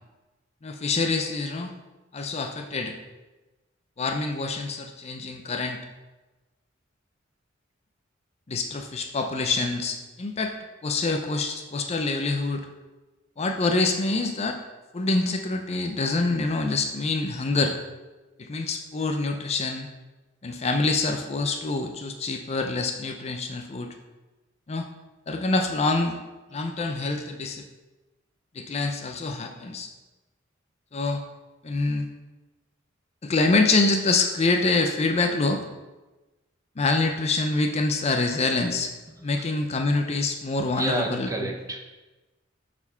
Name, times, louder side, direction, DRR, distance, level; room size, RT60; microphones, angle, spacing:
voice 1, 0.6-1.7 2.1-3.0 4.0-5.8 8.5-10.5 10.8-12.7 13.4-14.6 14.9-17.8 18.4-19.9 20.4-23.9 24.7-24.9 25.3-26.2 26.5-27.7 28.5-29.9 30.9-31.2 31.6-32.1 33.2-35.6 36.8-38.9 39.2-41.5, left 3 dB, 35° left, 5 dB, 0.5 m, -26 dB
voice 2, 40.7-41.8, right 1 dB, 15° right, 3 dB, 0.8 m, -30 dB
7.1 x 4.3 x 5.6 m, 1.1 s
head